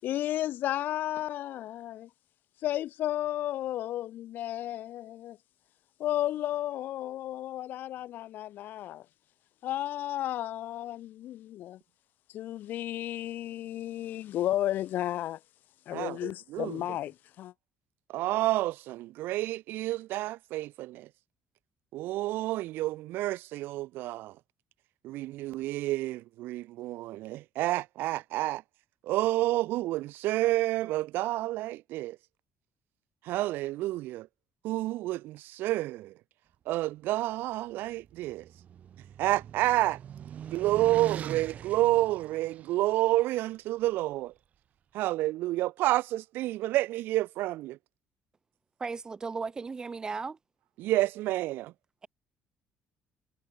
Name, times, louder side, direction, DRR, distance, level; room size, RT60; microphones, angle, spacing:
voice 1, 0.0-2.1 2.6-5.4 6.0-9.0 9.6-11.8 12.3-15.4 15.9-17.5, left 13 dB, 60° left, 6.1 m, -33 dB
voice 2, 15.9-16.8 18.1-21.1 21.9-24.3 25.0-28.6 29.1-32.2 33.2-34.3 34.6-36.1 36.7-38.4 39.2-40.0 40.5-44.3 44.9-47.8 50.8-51.7, right 16 dB, 80° right, 1.6 m, -29 dB
sound 1, 37.9-43.1, right 9 dB, 45° right, 7.6 m, -42 dB
voice 3, 48.8-50.4, right 4 dB, 20° right, 1.8 m, -35 dB
cardioid pair, 155°, 4 cm